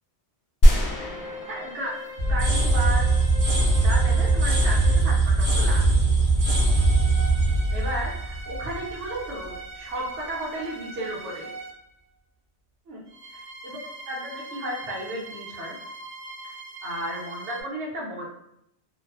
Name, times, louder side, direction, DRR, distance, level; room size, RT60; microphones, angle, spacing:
sound 1, 0.6-2.6 2.9-3.0, equal, 55° left, 0.7 m, -21 dB
sound 2, 0.9-5.2 6.4-11.9 13.1-17.6, right 1 dB, 15° right, 0.4 m, -41 dB
voice 1, 1.4-2.0 2.3-3.2 3.5-4.8 5.0-5.8 7.7-11.5 12.9-13.0 13.3-15.8 16.8-18.3, right 1 dB, 85° right, -5 dB, 1.0 m, -34 dB
sound 3, 2.2-9.0, right 2 dB, 50° right, 0.9 m, -21 dB
2.5 x 2.3 x 2.3 m, 0.78 s
omnidirectional pair, 1.1 m